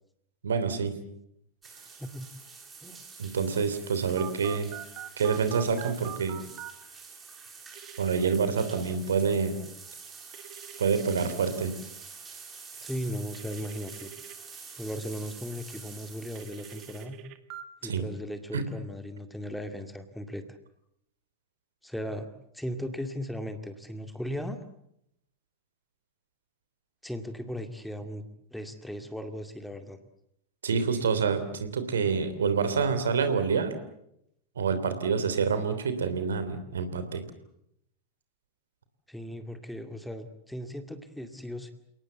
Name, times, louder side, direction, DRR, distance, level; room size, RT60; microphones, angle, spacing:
voice 1, 0.4-1.0 3.2-4.7 5.2-6.4 8.0-9.6 10.8-11.7 17.8-18.0 18.5-18.7 30.6-33.7 34.6-37.2, right 5 dB, 65° right, 10 dB, 3.1 m, -27 dB
sound 1, 1.6-17.1, right 5 dB, 20° right, 7.7 m, -47 dB
Telephone, 4.2-6.7 7.7-8.4 10.3-11.3 13.3-14.4 16.4-17.6, right 14 dB, 40° right, 2.0 m, -43 dB
voice 2, 12.8-14.1 14.8-17.2 17.8-20.4 21.8-24.6 27.0-28.2 28.5-30.0 39.1-41.7, equal, ahead, 8 dB, 2.2 m, -37 dB
29.5 x 18.5 x 8.2 m, 0.77 s
figure-of-eight pair, 90°, 0 cm